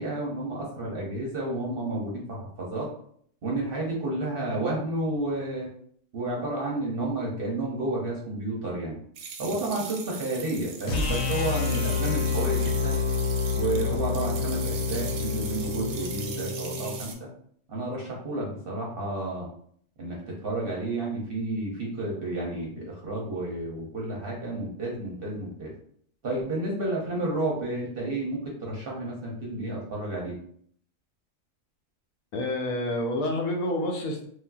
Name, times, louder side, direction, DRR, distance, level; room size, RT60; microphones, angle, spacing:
voice 1, 0.0-2.9 3.4-5.7 6.1-9.0 9.4-13.0 13.5-17.1 17.7-19.5 20.0-25.7 26.2-30.4, right 2 dB, 55° right, -3 dB, 0.7 m, -31 dB
sound 1, 9.2-17.1, right 5 dB, 90° right, 1.0 m, -40 dB
sound 2, 10.9-17.0, left 5 dB, 60° left, 0.9 m, -28 dB
voice 2, 32.3-34.3, left 1 dB, 80° left, 2 dB, 1.0 m, -28 dB
3.2 x 2.4 x 2.3 m, 0.62 s
omnidirectional pair, 1.4 m